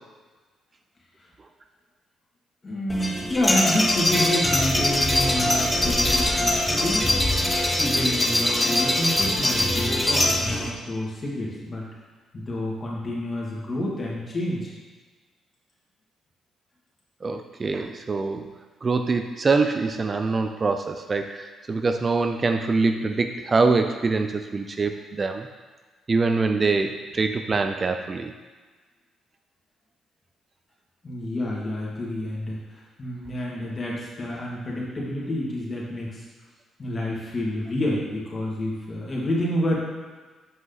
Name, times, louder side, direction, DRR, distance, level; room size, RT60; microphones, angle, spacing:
voice 1, 2.6-7.2 7.8-11.9 12.3-14.7 31.0-36.2 36.8-39.8, left 1 dB, 35° left, -5 dB, 2.3 m, -29 dB
sound 1, 2.9-10.7, left 1 dB, 15° left, 0.9 m, -22 dB
voice 2, 17.2-18.5 18.8-25.5 26.1-28.3, right 3 dB, 35° right, 6 dB, 0.4 m, -24 dB
7.9 x 5.2 x 4.0 m, 1.3 s
cardioid pair, 90°, 0 cm